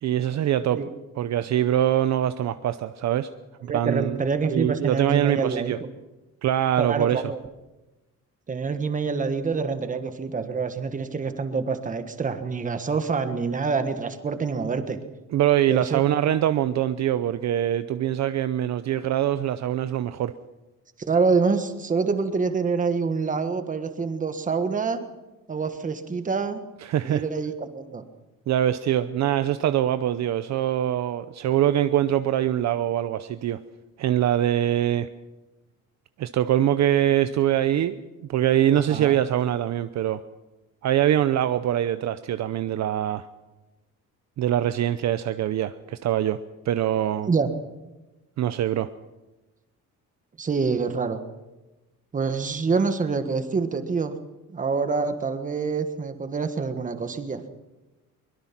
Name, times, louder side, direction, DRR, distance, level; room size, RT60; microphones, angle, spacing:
voice 1, 0.0-0.8 1.2-3.3 3.6-4.2 4.5-5.8 6.4-7.2 15.3-20.3 26.8-27.2 28.5-33.6 34.0-35.1 36.2-38.0 38.3-40.2 40.8-43.3 44.4-46.4 46.7-47.3 48.4-48.9, right 11 dB, 55° right, 12 dB, 0.7 m, -23 dB
voice 2, 3.6-5.7 6.8-7.4 8.5-15.0 15.7-16.0 21.1-25.0 25.5-26.6 27.0-28.0 38.7-39.2 47.2-47.5 50.4-51.2 52.1-54.1 54.5-57.4, right 4 dB, 25° right, 9 dB, 1.4 m, -26 dB
23.5 x 21.5 x 5.9 m, 1.1 s
cardioid pair, 175°, 34 cm